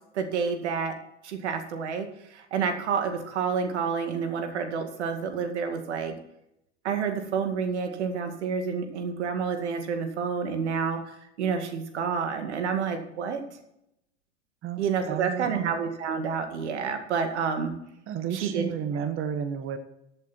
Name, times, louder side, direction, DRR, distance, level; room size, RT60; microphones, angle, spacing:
voice 1, 0.1-1.0 1.2-6.1 6.8-13.4 14.8-17.7 18.4-19.0, right 6 dB, 75° right, 6 dB, 2.1 m, -29 dB
voice 2, 14.6-15.7 18.1-19.8, right 8 dB, 40° right, 9 dB, 1.3 m, -32 dB
14.5 x 8.2 x 4.4 m, 0.81 s
hypercardioid pair, 85°, 34 cm